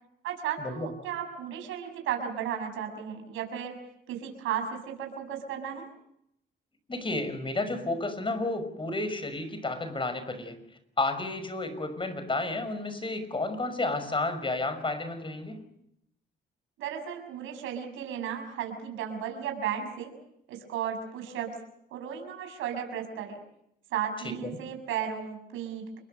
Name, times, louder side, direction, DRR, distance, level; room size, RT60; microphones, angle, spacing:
voice 1, 0.2-3.8 4.1-5.9 16.8-20.1 20.5-21.6 21.9-23.4 23.9-26.0, right 8 dB, 90° right, 4 dB, 6.3 m, -34 dB
voice 2, 6.9-10.6 11.0-15.6 24.2-24.6, left 2 dB, 25° left, 11 dB, 5.8 m, -31 dB
29.5 x 22.0 x 6.7 m, 0.77 s
cardioid pair, 90°, 20 cm